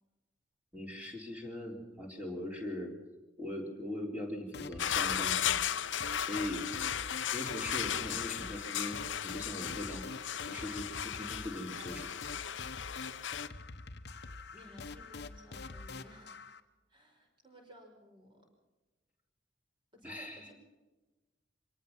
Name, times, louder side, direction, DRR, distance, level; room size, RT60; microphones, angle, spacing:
voice 1, 0.7-3.0 3.4-5.6 6.2-6.7 7.3-10.1 10.5-12.1 20.0-20.5, left 1 dB, 10° right, 0 dB, 3.7 m, -40 dB
sound 1, 4.5-16.6, left 3 dB, 55° left, 1.1 m, -46 dB
sound 2, 4.8-13.5, left 9 dB, 75° left, 0.8 m, -36 dB
voice 2, 14.5-16.5 16.9-18.5 19.9-20.5, equal, 25° right, 2 dB, 5.3 m, -56 dB
24.0 x 18.5 x 6.0 m, 1.2 s
head